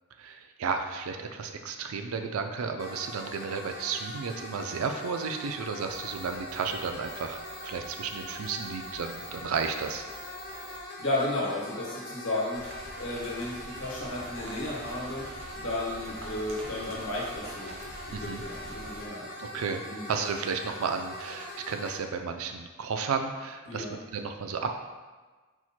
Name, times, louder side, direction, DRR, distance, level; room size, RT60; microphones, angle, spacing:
voice 1, 0.2-10.0 18.1-18.4 19.4-19.8 20.1-24.7, right 5 dB, 90° right, 5 dB, 0.4 m, -33 dB
sound 1, 2.8-22.0, left 1 dB, 45° left, 0.7 m, -42 dB
sound 2, 5.9-10.8, left 1 dB, 5° left, 0.4 m, -49 dB
voice 2, 10.7-12.6 13.0-15.3 15.5-17.7 18.1-19.3 19.5-20.2 23.7-24.0, left 1 dB, 80° left, -5 dB, 1.2 m, -34 dB
sound 3, 12.5-19.1, right 1 dB, 70° right, 0.8 m, -45 dB
4.5 x 2.1 x 4.2 m, 1.3 s
head